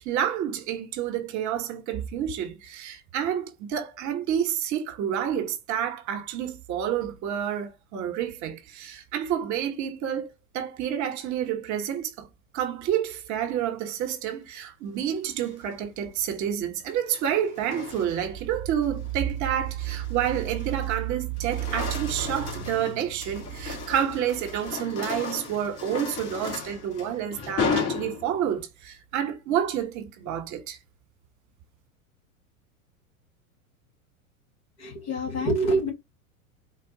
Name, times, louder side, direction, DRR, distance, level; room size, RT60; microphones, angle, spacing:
voice 1, 0.0-12.3 12.5-30.8, right 9 dB, 40° right, 1.3 m, -29 dB
sound 1, 15.2-15.7 16.8-18.4 18.8-19.1 19.6-21.0 21.3-28.6, left 5 dB, 35° left, 1.7 m, -35 dB
voice 2, 34.8-35.9, right 1 dB, 55° left, 1.9 m, -26 dB
4.4 x 2.4 x 3.9 m
hypercardioid pair, 105°, 43 cm